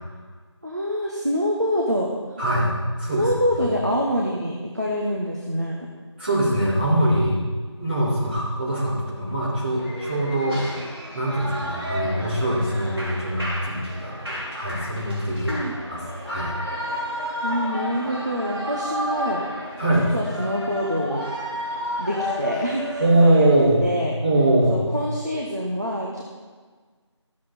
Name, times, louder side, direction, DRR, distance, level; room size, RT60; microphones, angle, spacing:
voice 1, 0.6-2.1 3.1-5.9 15.5-15.7 17.4-19.4 20.1-21.3 22.0-23.5 23.8-24.2 24.7-26.2, equal, 35° right, -2 dB, 0.9 m, -25 dB
voice 2, 2.4-2.7 3.0-3.3 6.2-7.4 7.8-10.6 11.1-16.5 19.8-20.0 23.0-23.8 24.2-24.8, right 1 dB, 20° right, -12 dB, 2.9 m, -22 dB
Shout / Cheering, 9.8-23.6, equal, 55° right, 3.4 m, -32 dB
13.5 x 7.4 x 4.3 m, 1.5 s
figure-of-eight pair, 175°, 16 cm